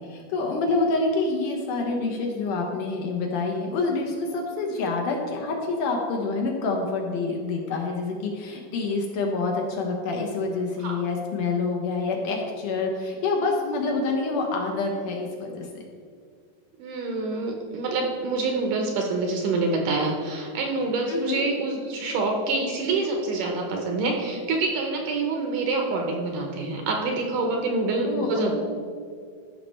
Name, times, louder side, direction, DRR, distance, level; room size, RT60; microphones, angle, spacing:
voice 1, 0.0-15.7 21.1-21.4 28.0-28.5, left 3 dB, 70° left, 1 dB, 2.2 m, -27 dB
voice 2, 16.8-28.5, right 3 dB, 70° right, 2 dB, 2.1 m, -26 dB
14.0 x 5.9 x 4.3 m, 2.1 s
omnidirectional pair, 4.4 m